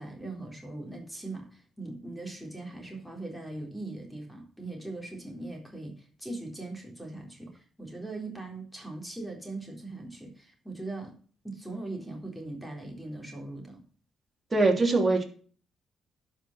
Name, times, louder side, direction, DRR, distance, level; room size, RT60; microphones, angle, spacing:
voice 1, 0.0-11.2 11.4-13.8, right 2 dB, ahead, 2 dB, 3.7 m, -40 dB
voice 2, 14.5-15.2, right 3 dB, 25° right, 2 dB, 3.0 m, -22 dB
11.5 x 5.6 x 5.9 m, 0.42 s
cardioid pair, 90°, 0 cm